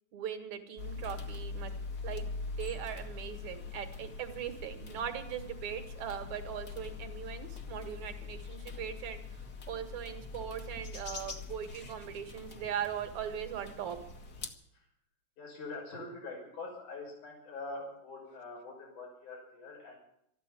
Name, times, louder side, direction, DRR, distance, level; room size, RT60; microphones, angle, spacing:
voice 1, 0.1-1.7 2.0-9.2 9.7-14.0, right 9 dB, 70° right, 8 dB, 3.0 m, -40 dB
sound 1, 0.8-14.5, left 4 dB, 40° left, 1.6 m, -43 dB
voice 2, 15.4-20.0, left 3 dB, 85° left, -2 dB, 7.7 m, -44 dB
14.0 x 12.0 x 8.5 m, 0.74 s
omnidirectional pair, 3.4 m